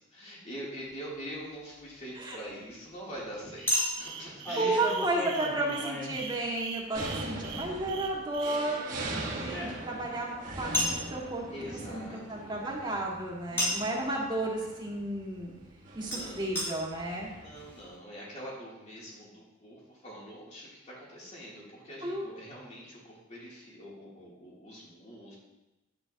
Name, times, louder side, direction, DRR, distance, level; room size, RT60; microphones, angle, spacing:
voice 1, 0.0-4.8 11.5-12.5 13.5-14.1 16.1-16.7 17.4-25.4, equal, 35° left, -6 dB, 3.2 m, -44 dB
Chink clink, 0.9-1.0 3.7-6.9 8.4-10.1 10.7-11.0 13.6-14.0 16.1-16.2 16.6-16.7 17.3-17.4 17.6-17.7, equal, 10° left, 2.5 m, -33 dB
sound 1, 3.6-8.6, right 7 dB, 75° right, 1.1 m, -42 dB
voice 2, 4.6-15.5 15.9-17.3 22.0-22.3, right 2 dB, 25° right, -3 dB, 2.0 m, -33 dB
sound 2, 6.9-17.7, right 2 dB, 45° right, 1.7 m, -41 dB
11.5 x 8.8 x 2.9 m, 1.0 s
head